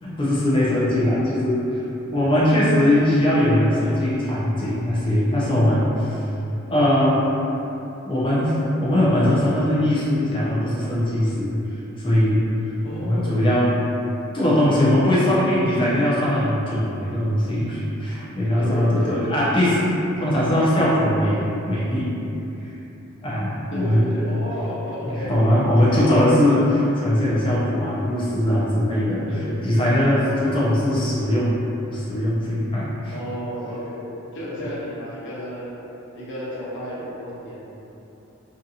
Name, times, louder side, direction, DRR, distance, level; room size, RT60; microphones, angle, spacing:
voice 1, 0.0-6.2 6.7-7.2 8.0-11.6 12.0-12.5 13.0-13.8 14.3-22.7 23.2-24.0 25.1-31.6 31.9-33.1, left 1 dB, 25° left, -8 dB, 0.4 m, -20 dB
voice 2, 12.8-13.5 18.6-19.4 23.7-25.4 25.9-26.6 29.3-29.5 33.1-34.0 34.3-35.8 36.1-37.6, equal, 60° left, -8 dB, 0.7 m, -32 dB
2.7 x 2.6 x 2.3 m, 2.9 s
head